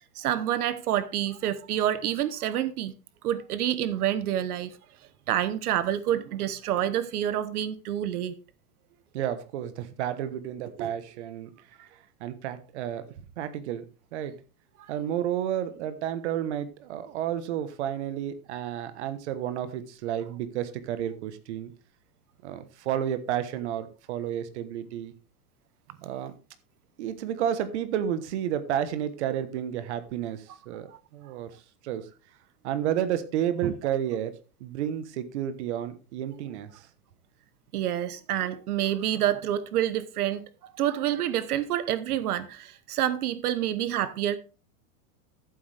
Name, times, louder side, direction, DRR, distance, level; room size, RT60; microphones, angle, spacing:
voice 1, 0.0-2.9 3.2-4.8 5.3-8.3 30.9-31.0 33.6-33.7 37.7-40.4 40.8-44.4, right 11 dB, 85° right, 1.1 m, -28 dB
voice 2, 9.1-11.5 12.2-13.1 13.4-13.8 14.1-14.3 14.9-21.7 22.4-25.1 26.0-26.3 27.0-31.5 31.8-32.1 32.6-34.3 34.6-36.9, right 10 dB, 50° right, 1.2 m, -31 dB
13.5 x 7.7 x 3.4 m
supercardioid pair, 175°, 44 cm